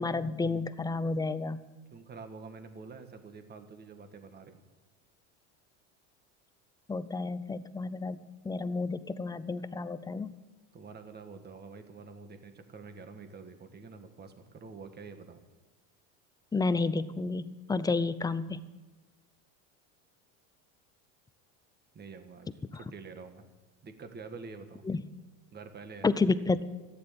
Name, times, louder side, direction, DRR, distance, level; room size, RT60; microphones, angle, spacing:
voice 1, 0.0-1.6 6.9-10.3 16.5-18.6 24.9-25.0 26.0-26.7, left 3 dB, 10° left, 14 dB, 0.5 m, -31 dB
voice 2, 1.9-4.6 10.7-15.4 21.9-23.5 23.8-24.8 25.5-26.4, right 4 dB, 25° right, 8 dB, 1.7 m, -47 dB
14.0 x 9.9 x 8.6 m, 1.2 s
supercardioid pair, 115°, 38 cm